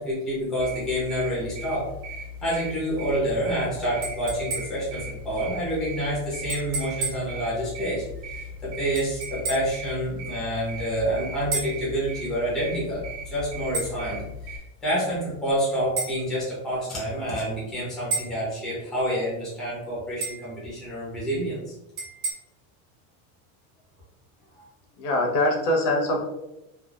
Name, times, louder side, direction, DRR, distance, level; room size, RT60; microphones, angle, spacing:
voice 1, 0.0-1.9 2.4-21.7 24.6-24.7, equal, ahead, -8 dB, 0.6 m, -28 dB
sound 1, 0.6-14.6, left 1 dB, 40° right, 0.7 m, -38 dB
sound 2, 4.0-4.9 6.5-7.3 9.0-9.8 11.5-11.8 13.7-14.0 16.0-16.2 18.1-18.4 20.2-20.5 22.0-22.3, right 4 dB, 65° right, 1.4 m, -31 dB
voice 2, 25.0-26.3, left 1 dB, 80° left, 0 dB, 1.1 m, -23 dB
3.4 x 2.4 x 2.4 m, 0.93 s
cardioid pair, 180°, 46 cm